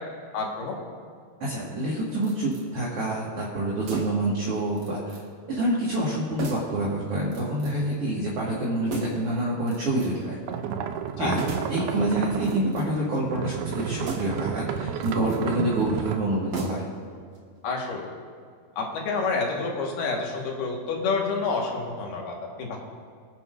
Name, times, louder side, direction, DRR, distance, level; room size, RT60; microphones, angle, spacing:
voice 1, 0.3-0.8 11.2-11.3 17.6-18.1 18.8-22.8, left 4 dB, 75° left, -1 dB, 3.5 m, -28 dB
voice 2, 1.4-5.2 5.5-10.4 11.2-11.4 11.7-16.8, right 1 dB, 45° right, -7 dB, 2.3 m, -27 dB
sound 1, 2.2-2.7 3.8-4.3 4.8-5.3 5.5-5.6 6.4-6.8 7.3-7.9 8.9-9.3 9.7-10.3 11.4-11.8 12.4-13.1 14.0-14.5 14.9-15.4 16.5-17.0 17.3-17.4, right 3 dB, 65° right, 1.2 m, -36 dB
sound 2, 10.5-12.9 13.2-16.2, right 8 dB, 80° right, 2.5 m, -31 dB
24.0 x 8.8 x 2.6 m, 2.2 s
omnidirectional pair, 4.6 m